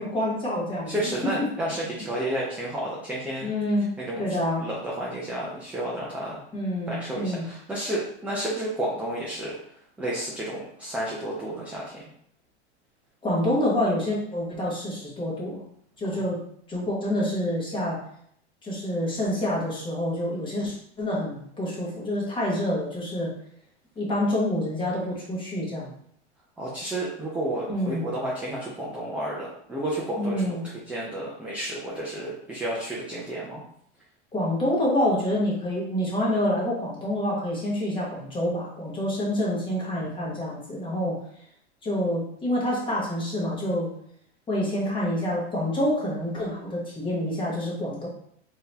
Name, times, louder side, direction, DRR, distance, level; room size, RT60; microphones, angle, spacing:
voice 1, 0.0-1.5 3.4-3.9 4.2-4.7 6.5-7.5 13.2-15.6 16.0-16.4 16.7-18.0 18.6-23.3 24.0-25.9 27.7-28.1 30.2-30.6 34.3-41.2 41.8-43.9 44.5-48.1, left 1 dB, 15° left, -5 dB, 1.2 m, -27 dB
voice 2, 0.9-3.5 4.0-4.2 4.6-6.4 6.9-9.6 10.0-12.0 16.1-16.3 26.6-33.6, right 1 dB, 5° right, -6 dB, 0.4 m, -31 dB
3.7 x 2.9 x 3.3 m, 0.67 s
supercardioid pair, 145°, 33 cm